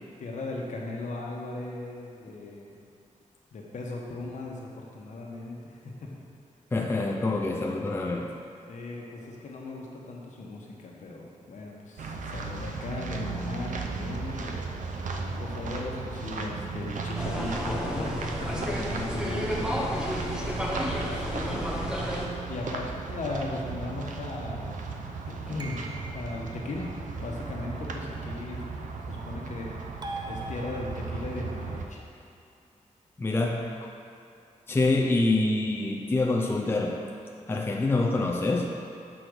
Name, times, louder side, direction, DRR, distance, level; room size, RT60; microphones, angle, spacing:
voice 1, 0.0-2.8 3.5-5.9 8.7-14.7 15.4-19.8 21.0-21.2 21.5-21.9 22.5-24.8 25.2-25.9 26.1-26.9 27.2-28.7 29.1-29.7 30.3-32.0, left 2 dB, 70° left, -2 dB, 1.1 m, -37 dB
voice 2, 6.7-8.4 33.2-33.9 34.7-37.0 37.5-38.7, left 2 dB, 15° left, 1 dB, 0.4 m, -26 dB
sound 1, 12.0-31.9, right 4 dB, 80° right, 0.6 m, -36 dB
sound 2, 17.1-22.3, equal, 5° right, 0.8 m, -31 dB
sound 3, 25.6-26.5 30.0-31.2, right 2 dB, 35° right, 0.5 m, -40 dB
6.1 x 5.1 x 6.2 m, 2.6 s
wide cardioid pair, 170°, 13 cm